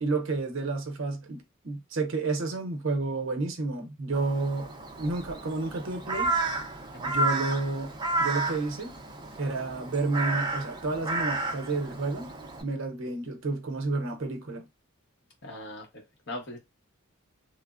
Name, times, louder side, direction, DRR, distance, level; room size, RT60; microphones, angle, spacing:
voice 1, 0.0-4.7 5.0-6.3 7.1-7.9 8.2-8.9 9.4-12.3 12.6-14.7, right 3 dB, 65° right, 0.7 m, -30 dB
Crow, 4.1-12.6, right 2 dB, 20° right, 0.5 m, -32 dB
voice 2, 15.4-16.6, left 1 dB, 50° left, 0.9 m, -40 dB
3.2 x 2.0 x 2.4 m
head